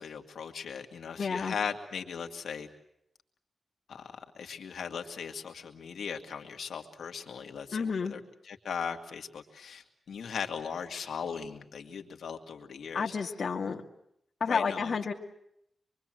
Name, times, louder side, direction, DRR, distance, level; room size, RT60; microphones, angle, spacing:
voice 1, 0.0-2.7 3.9-13.1 14.4-15.1, left 6 dB, 90° left, 4 dB, 2.2 m, -38 dB
voice 2, 1.2-1.5 7.7-8.1 12.9-13.8 14.4-15.1, left 5 dB, 65° left, 1 dB, 2.0 m, -30 dB
26.0 x 23.5 x 7.7 m, 0.75 s
wide cardioid pair, 95°, 0 cm